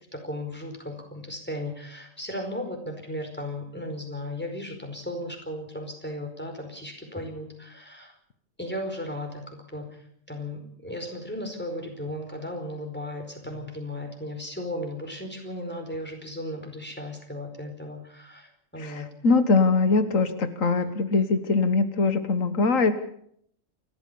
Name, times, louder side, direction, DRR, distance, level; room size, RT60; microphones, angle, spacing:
voice 1, 0.1-8.1 8.6-9.8 10.3-19.1 20.8-21.3, left 1 dB, 10° left, 3 dB, 4.9 m, -36 dB
voice 2, 18.8-22.9, left 4 dB, 85° left, 10 dB, 1.8 m, -22 dB
29.0 x 13.5 x 7.0 m, 0.68 s
omnidirectional pair, 1.3 m